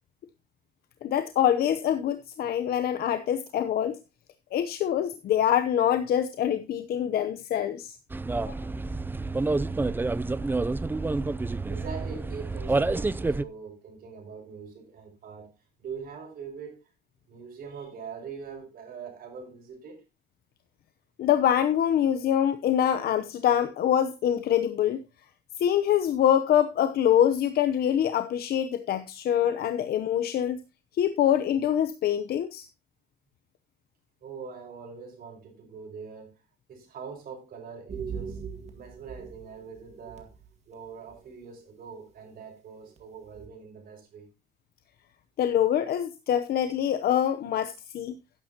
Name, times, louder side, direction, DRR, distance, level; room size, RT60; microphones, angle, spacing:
voice 1, 1.0-4.0 4.5-8.0 8.5-8.6 21.2-25.0 25.6-30.6 31.0-32.7 45.4-48.2, left 10 dB, 65° left, 0.8 m, -25 dB
sound 1, 8.1-13.4, right 3 dB, 10° right, 0.4 m, -28 dB
voice 2, 11.7-16.8 17.3-20.0 34.2-36.3 36.7-38.4 38.7-40.3 40.7-44.3, right 6 dB, 60° right, 5.7 m, -43 dB
sound 2, 37.9-40.5 41.0-41.2 42.2-42.3 43.0-43.1 43.3-43.5, right 6 dB, 40° right, 1.9 m, -39 dB
12.5 x 10.0 x 2.9 m
cardioid pair, 115°, 17 cm